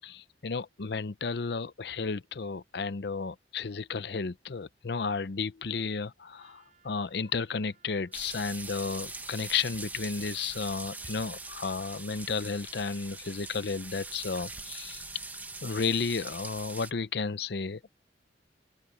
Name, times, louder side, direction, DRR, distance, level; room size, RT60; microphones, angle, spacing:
voice 1, 0.0-15.0 15.6-17.8, left 5 dB, 65° left, 0.6 m, -33 dB
Trumpet, 6.3-10.6, right 6 dB, 45° right, 7.7 m, -68 dB
sound 1, 8.1-16.9, right 3 dB, 10° right, 1.2 m, -42 dB
open air
head